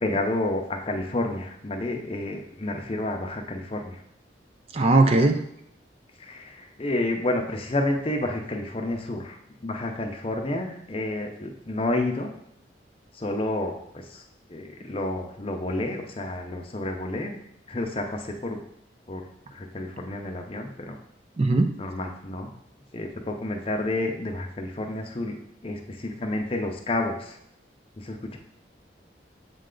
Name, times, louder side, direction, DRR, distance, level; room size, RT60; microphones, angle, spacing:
voice 1, 0.0-4.0 5.2-5.3 6.2-12.3 13.1-14.2 14.5-17.4 17.7-18.6 19.1-19.2 19.5-21.0 21.8-22.5 22.9-27.4 28.0-28.4, left 2 dB, 30° left, 3 dB, 0.6 m, -30 dB
voice 2, 4.7-5.4 21.4-21.7, right 2 dB, 35° right, 6 dB, 0.4 m, -19 dB
7.5 x 3.3 x 3.8 m, 0.74 s
head